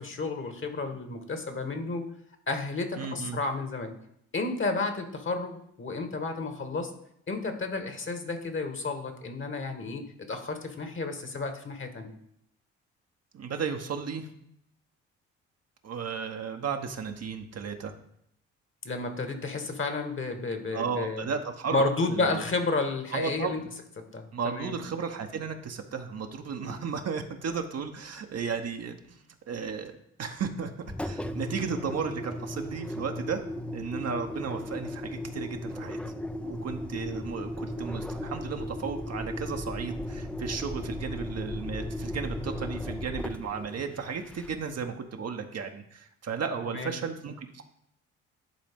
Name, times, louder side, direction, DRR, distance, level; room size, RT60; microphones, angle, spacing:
voice 1, 0.0-2.1 2.5-3.9 4.3-6.9 7.3-10.0 10.3-12.1 18.8-21.3 21.7-23.6 24.1-24.8 26.6-26.8 46.7-46.9, left 3 dB, 35° left, 6 dB, 1.5 m, -31 dB
voice 2, 3.0-3.4 13.3-14.3 15.8-17.9 20.7-22.4 23.1-23.7 24.3-29.9 30.2-30.7 31.0-33.4 33.7-36.0 36.4-47.6, right 6 dB, 45° right, 5 dB, 1.0 m, -34 dB
Engine, 30.8-44.8, left 1 dB, 5° left, 0.5 m, -36 dB
10.5 x 3.9 x 3.6 m, 0.74 s
hypercardioid pair, 45°, 34 cm